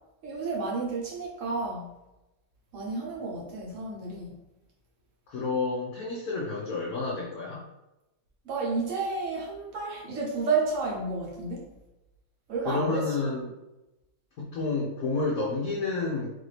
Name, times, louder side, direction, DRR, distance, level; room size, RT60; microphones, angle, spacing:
voice 1, 0.2-1.9 2.7-4.3 8.4-11.7 12.5-13.1, right 3 dB, 50° right, -2 dB, 1.0 m, -31 dB
voice 2, 5.3-7.6 12.6-13.5 14.4-16.3, left 3 dB, 60° left, -5 dB, 1.0 m, -30 dB
4.2 x 2.6 x 3.2 m, 0.97 s
omnidirectional pair, 2.1 m